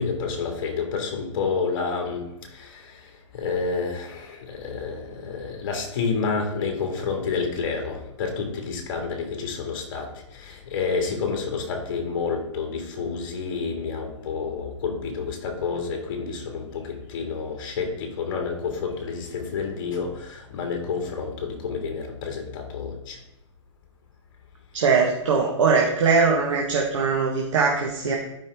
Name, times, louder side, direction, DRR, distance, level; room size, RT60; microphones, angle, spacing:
voice 1, 0.0-3.0 3.3-23.2, left 5 dB, 45° left, 3 dB, 2.1 m, -29 dB
voice 2, 24.7-28.2, right 4 dB, 75° right, 0 dB, 1.4 m, -21 dB
12.0 x 5.4 x 3.5 m, 0.88 s
hypercardioid pair, 155°, 16 cm